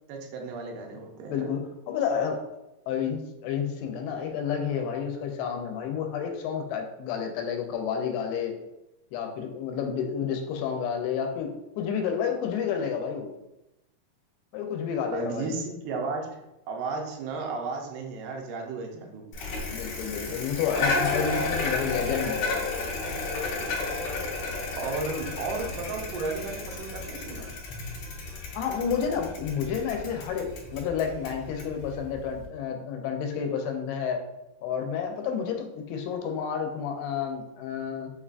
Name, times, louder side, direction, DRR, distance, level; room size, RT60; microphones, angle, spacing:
voice 1, 0.1-1.4 15.1-16.3 16.7-19.3 24.8-27.5, right 3 dB, 85° right, 1 dB, 2.6 m, -34 dB
voice 2, 1.3-2.4 2.9-8.5 9.1-13.3 14.5-15.5 19.7-22.7 28.5-34.2 34.6-38.1, left 7 dB, 90° left, 4 dB, 2.5 m, -30 dB
Bicycle, 19.3-32.5, left 3 dB, 70° left, 1.9 m, -32 dB
6.5 x 2.2 x 2.4 m, 0.92 s
omnidirectional pair, 4.4 m